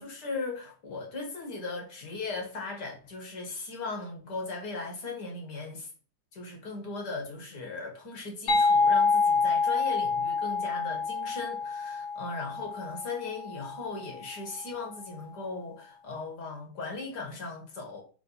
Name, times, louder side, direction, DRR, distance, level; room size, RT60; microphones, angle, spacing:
voice 1, 0.0-5.9 6.3-18.0, left 3 dB, 55° left, 2.1 m, -38 dB
sound 1, 8.5-13.9, left 4 dB, 70° left, 2.3 m, -27 dB
5.0 x 3.6 x 5.5 m
omnidirectional pair, 2.3 m